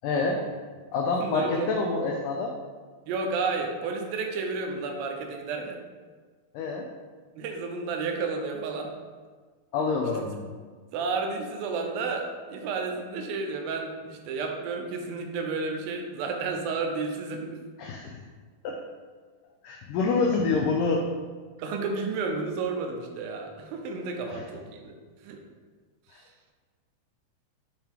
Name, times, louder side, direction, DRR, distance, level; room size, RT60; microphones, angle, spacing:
voice 1, 0.0-0.4 0.9-2.5 6.5-6.9 9.7-10.5 17.8-18.2 18.6-18.8 19.6-21.0 24.3-24.4 26.1-26.2, left 4 dB, 85° left, 1 dB, 1.8 m, -27 dB
voice 2, 1.2-1.7 3.1-5.8 7.4-8.9 10.9-17.6 21.6-24.9 25.2-25.4, right 4 dB, 80° right, 3 dB, 2.4 m, -31 dB
7.7 x 3.5 x 4.4 m, 1.5 s
omnidirectional pair, 4.4 m